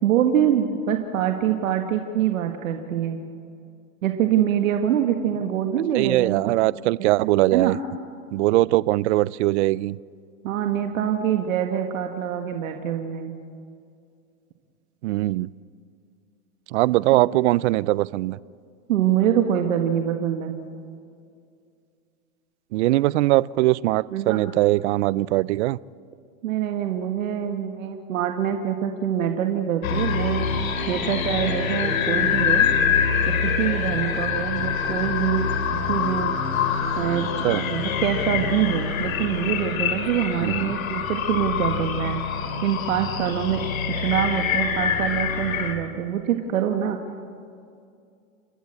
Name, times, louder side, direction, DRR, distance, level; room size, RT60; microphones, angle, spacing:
voice 1, 0.0-3.2 4.0-6.6 7.0-7.1 7.5-7.8 10.4-13.3 17.1-17.2 18.9-20.5 24.1-24.4 26.4-30.5 30.9-32.7 33.3-36.3 37.0-37.3 37.7-42.2 42.6-43.6 44.0-47.0, right 9 dB, 75° right, 5 dB, 1.7 m, -25 dB
voice 2, 5.9-7.7 8.3-10.0 15.0-15.5 16.7-18.4 22.7-25.8 37.4-37.7 40.4-40.7, right 18 dB, 60° right, 21 dB, 0.5 m, -21 dB
sound 1, 29.8-45.7, left 6 dB, 85° left, 2.8 m, -25 dB
29.5 x 12.5 x 8.8 m, 2.4 s
supercardioid pair, 145°, 40 cm